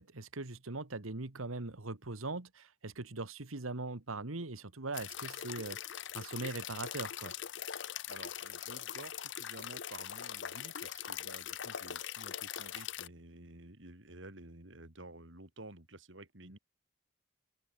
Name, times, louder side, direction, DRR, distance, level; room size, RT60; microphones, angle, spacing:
voice 1, 0.0-7.3, right 3 dB, 90° right, 1.7 m, -41 dB
sound 1, 4.9-13.1, left 10 dB, 60° left, 0.8 m, -42 dB
voice 2, 8.1-16.6, right 2 dB, 65° right, 3.4 m, -52 dB
open air
head